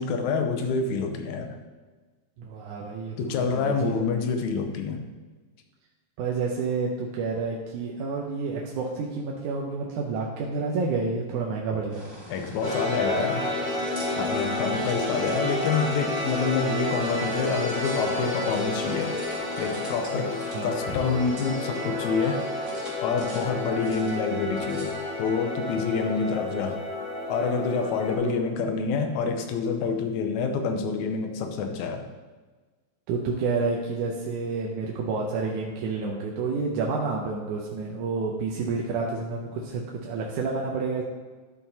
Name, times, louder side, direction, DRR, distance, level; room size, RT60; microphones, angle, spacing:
voice 1, 0.0-1.6 3.2-5.1 12.3-13.5 14.2-19.2 19.6-20.4 20.6-22.4 23.0-26.8 27.3-32.0, left 5 dB, 80° left, 5 dB, 2.0 m, -27 dB
voice 2, 2.4-4.1 6.2-12.0 20.1-20.2 20.5-20.7 28.2-28.3 33.1-41.0, right 4 dB, 85° right, -2 dB, 2.3 m, -29 dB
sound 1, 11.9-26.3, equal, 30° right, 1.8 m, -43 dB
sound 2, 12.6-28.2, left 2 dB, 40° left, 2.8 m, -30 dB
11.5 x 5.9 x 2.8 m, 1.3 s
omnidirectional pair, 3.4 m